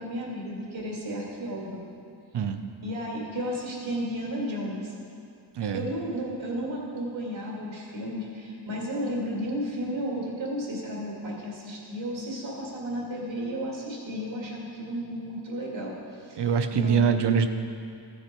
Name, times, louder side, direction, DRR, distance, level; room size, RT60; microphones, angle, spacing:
voice 1, 0.0-1.8 2.8-4.9 5.7-16.0 16.2-17.1, equal, 80° right, -3 dB, 2.3 m, -33 dB
voice 2, 16.4-17.5, right 7 dB, 65° right, 8 dB, 0.7 m, -24 dB
14.5 x 6.6 x 4.4 m, 2.5 s
wide cardioid pair, 130°, 45 cm